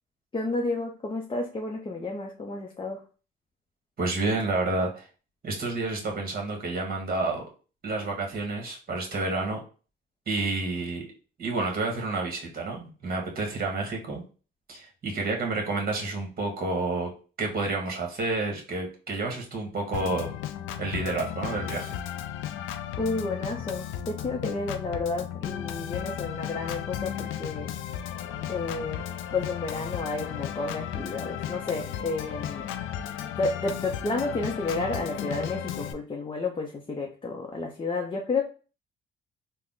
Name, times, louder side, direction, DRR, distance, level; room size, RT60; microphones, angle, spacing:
voice 1, 0.3-3.0 23.0-27.7 28.5-29.0 29.3-32.7 33.3-38.4, left 3 dB, 25° left, 1 dB, 0.6 m, -31 dB
voice 2, 4.0-5.1 5.4-7.5 7.8-9.6 10.3-11.1 11.4-14.2 14.7-17.1 17.4-20.3 20.8-21.9, right 3 dB, 50° right, 1 dB, 1.5 m, -29 dB
Organ, 19.9-35.9, left 10 dB, 85° left, 0.4 m, -35 dB
3.5 x 2.1 x 3.7 m, 0.36 s
cardioid pair, 90°, 20 cm